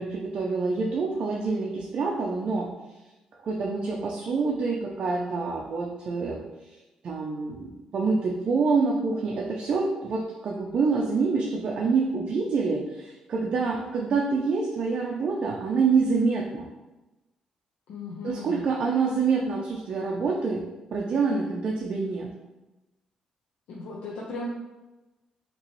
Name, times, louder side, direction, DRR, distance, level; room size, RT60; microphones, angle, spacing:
voice 1, 0.0-2.7 3.4-6.7 7.0-16.6 18.2-20.6 20.9-22.3, right 4 dB, 45° right, -1 dB, 0.5 m, -26 dB
voice 2, 17.9-18.7 23.7-24.5, left 2 dB, 90° left, -4 dB, 0.7 m, -36 dB
5.6 x 3.0 x 3.1 m, 1.1 s
cardioid pair, 160°, 2 cm